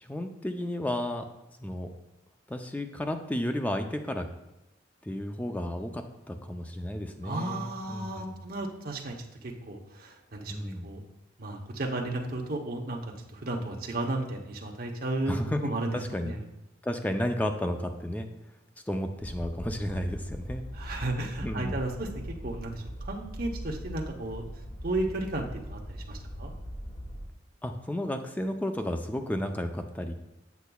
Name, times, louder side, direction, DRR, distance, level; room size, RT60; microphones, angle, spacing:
voice 1, 0.0-1.2 1.6-1.9 2.5-4.3 5.0-8.4 10.5-10.9 15.3-16.3 16.8-18.3 18.9-20.6 21.4-21.8 27.6-30.1, left 1 dB, 10° left, 5 dB, 0.5 m, -32 dB
voice 2, 7.2-11.0 11.4-16.4 20.8-24.5 24.8-26.5, right 2 dB, 50° right, 1 dB, 0.9 m, -34 dB
sound 1, 19.2-27.3, equal, 45° left, 1.4 m, -40 dB
8.2 x 6.9 x 2.3 m, 0.94 s
head